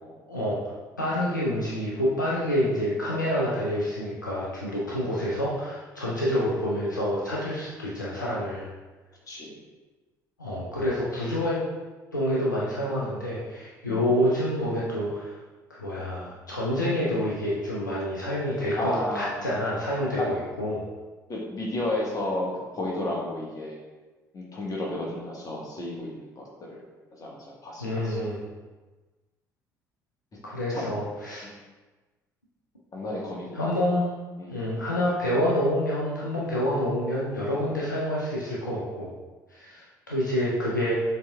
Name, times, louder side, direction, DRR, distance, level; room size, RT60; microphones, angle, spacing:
voice 1, 0.3-0.7 1.0-8.7 10.4-11.6 12.1-15.4 15.7-20.8 27.8-28.5 30.4-31.5 33.5-34.1 34.5-39.1 39.5-40.9, equal, 85° left, -6 dB, 0.5 m, -27 dB
voice 2, 9.3-9.6 13.9-14.1 18.7-19.6 20.2-20.3 21.3-22.5 22.7-23.8 24.3-26.8 27.2-28.3 30.7-30.9 31.4-31.5 32.9-33.8 34.4-34.6, left 1 dB, 35° left, -3 dB, 1.3 m, -32 dB
6.6 x 3.4 x 2.3 m, 1.2 s
figure-of-eight pair, 50°, 10 cm